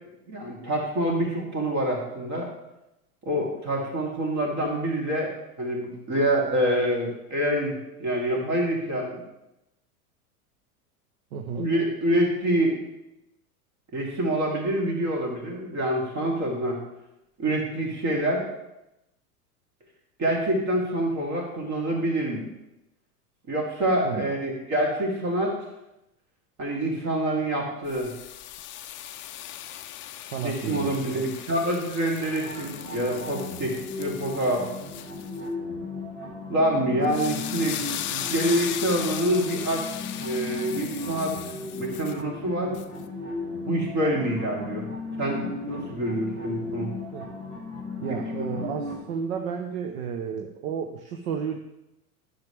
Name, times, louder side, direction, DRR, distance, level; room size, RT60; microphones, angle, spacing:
voice 1, 0.3-2.5 3.2-9.2 11.6-12.8 13.9-16.8 17.4-18.4 20.2-22.5 23.5-25.6 26.6-28.1 30.4-34.7 36.5-39.8 40.2-42.8 43.6-44.9 45.2-46.9 48.4-48.5, right 1 dB, 35° right, -1 dB, 2.8 m, -26 dB
voice 2, 11.3-11.7 24.0-24.3 30.3-31.4 47.1-47.4 48.0-51.6, right 7 dB, 65° right, 4 dB, 0.9 m, -32 dB
sound 1, 27.9-35.4 37.0-42.2 42.7-42.8, left 12 dB, 25° left, 0.5 m, -37 dB
sound 2, 32.2-49.0, left 3 dB, 80° right, 3.1 m, -36 dB
10.5 x 6.6 x 3.4 m, 0.90 s
hypercardioid pair, 90°, 46 cm